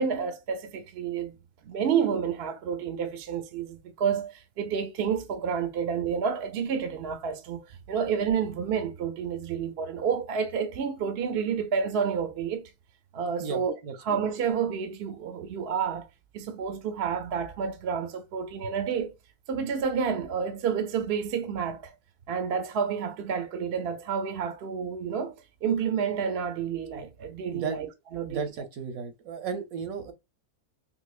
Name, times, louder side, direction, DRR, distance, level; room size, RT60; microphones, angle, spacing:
voice 1, 0.0-1.3 1.6-12.7 13.1-13.7 14.1-16.1 16.3-19.1 19.5-21.9 22.3-25.3 25.6-27.9 28.1-28.4, right 7 dB, 55° right, 0.8 m, -29 dB
voice 2, 13.4-14.2 27.5-27.8 28.2-30.1, right 6 dB, 75° right, 1.2 m, -34 dB
4.0 x 2.8 x 2.4 m
omnidirectional pair, 1.5 m